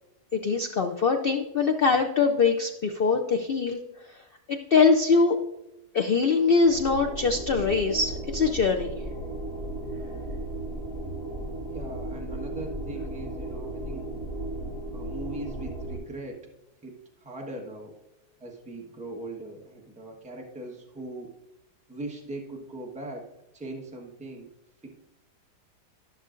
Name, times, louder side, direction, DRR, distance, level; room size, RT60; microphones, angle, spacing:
voice 1, 0.3-3.8 4.5-5.4 5.9-8.9, left 4 dB, 75° left, 4 dB, 0.5 m, -23 dB
sound 1, 6.6-16.0, right 1 dB, 40° left, 3.2 m, -35 dB
voice 2, 11.7-14.1 14.9-16.4 16.8-17.9 18.4-21.3 21.9-24.5 24.8-24.9, right 2 dB, 5° right, 0 dB, 1.1 m, -40 dB
13.0 x 6.5 x 2.5 m, 0.96 s
omnidirectional pair, 1.7 m